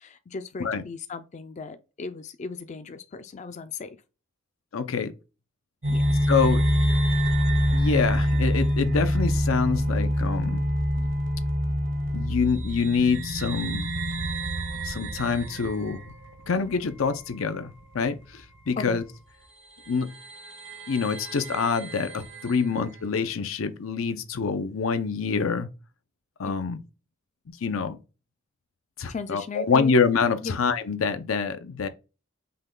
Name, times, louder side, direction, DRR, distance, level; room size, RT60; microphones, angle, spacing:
voice 1, 0.0-4.0 5.9-6.0 11.0-11.1 14.7-14.8 18.8-19.0 22.7-22.8 26.4-26.6 29.1-30.0 30.4-30.6, left 4 dB, 35° left, 0.4 m, -37 dB
voice 2, 4.7-5.1 6.3-6.6 7.7-10.7 12.1-13.9 14.8-16.1 16.5-19.0 19.9-20.1 20.9-25.7 26.4-26.8 27.6-28.0 29.0-31.9, left 5 dB, 85° left, 0.6 m, -26 dB
sound 1, 5.8-17.8 18.1-18.2 19.2-19.3 19.8-22.8, equal, 65° right, 1.0 m, -26 dB
5.6 x 2.2 x 3.7 m
head